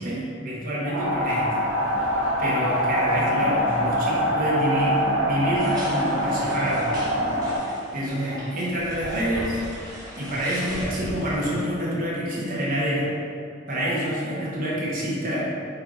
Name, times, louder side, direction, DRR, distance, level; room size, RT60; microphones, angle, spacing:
voice 1, 0.0-1.6 2.4-6.9 7.9-9.6 10.2-13.1 13.7-15.5, equal, 45° right, -6 dB, 1.0 m, -27 dB
sound 1, 0.8-1.4 4.3-4.9 5.4-5.5 5.8-6.6 8.2-8.5 9.0-9.3 12.7-12.8 13.8-14.3, equal, 45° left, 0.6 m, -40 dB
sound 2, 0.9-7.6, equal, 85° right, 0.9 m, -24 dB
sound 3, 5.5-11.4, equal, 20° right, 0.9 m, -38 dB
4.6 x 2.4 x 3.8 m, 2.5 s
head